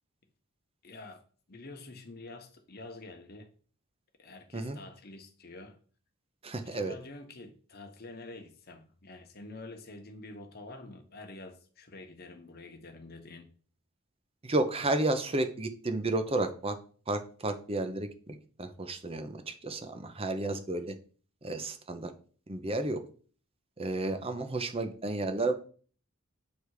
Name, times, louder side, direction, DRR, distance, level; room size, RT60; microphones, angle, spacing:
voice 1, 0.8-1.2 1.5-3.5 4.2-5.8 6.6-13.5 24.0-24.3, left 2 dB, 45° left, 5 dB, 1.1 m, -47 dB
voice 2, 6.4-6.9 14.4-16.8 17.1-21.0 21.4-22.1 22.5-23.0 23.8-25.5, right 2 dB, 25° right, 8 dB, 0.7 m, -32 dB
8.3 x 3.5 x 4.8 m, 0.42 s
head